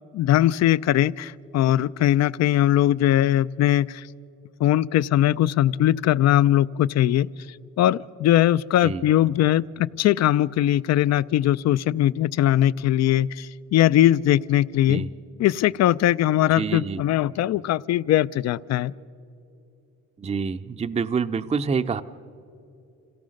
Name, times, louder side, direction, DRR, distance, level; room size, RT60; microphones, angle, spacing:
voice 1, 0.1-4.1 4.6-7.3 7.8-15.0 15.4-18.9, left 13 dB, 60° left, 20 dB, 0.4 m, -20 dB
voice 2, 16.5-17.0 20.2-22.0, right 5 dB, 20° right, 9 dB, 0.5 m, -27 dB
26.5 x 17.0 x 6.4 m, 2.7 s
cardioid pair, 90°, 30 cm